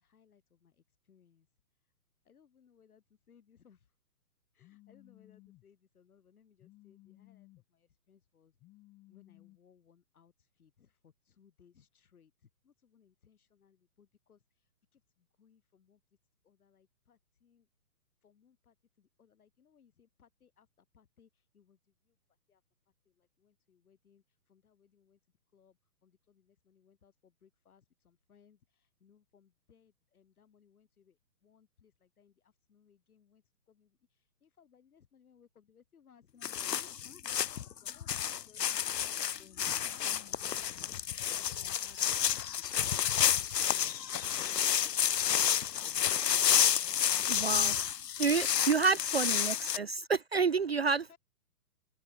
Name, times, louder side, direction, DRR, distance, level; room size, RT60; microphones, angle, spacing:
voice 1, 0.0-1.5 2.2-3.9 4.5-8.6 9.1-16.0 16.4-17.7 18.2-22.2 22.5-22.6 23.1-25.2 25.5-41.0 41.4-43.1 43.6-45.1 45.7-48.0 48.5-49.9 50.5-50.6 51.1-51.2, left 7 dB, 60° left, 7.1 m, -64 dB
Telephone, 4.6-5.6 6.6-7.6 8.6-9.6, left 18 dB, 15° left, 3.5 m, -59 dB
sound 1, 36.4-49.8, left 9 dB, 80° left, 0.9 m, -30 dB
voice 2, 47.3-47.7 48.2-51.1, right 5 dB, 45° right, 0.4 m, -29 dB
hypercardioid pair, 155°, 48 cm